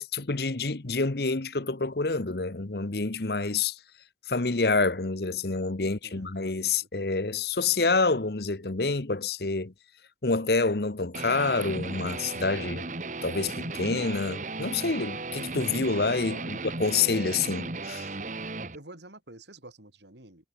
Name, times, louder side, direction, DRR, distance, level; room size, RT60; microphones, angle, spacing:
voice 1, 0.0-3.7 4.3-9.7 10.2-12.9 13.2-18.1, left 4 dB, 60° left, 1.1 m, -27 dB
voice 2, 5.8-6.9 16.3-16.6 18.7-20.5, right 2 dB, 75° right, 5.9 m, -49 dB
Guitar, 11.1-18.8, right 3 dB, 45° right, 2.1 m, -36 dB
head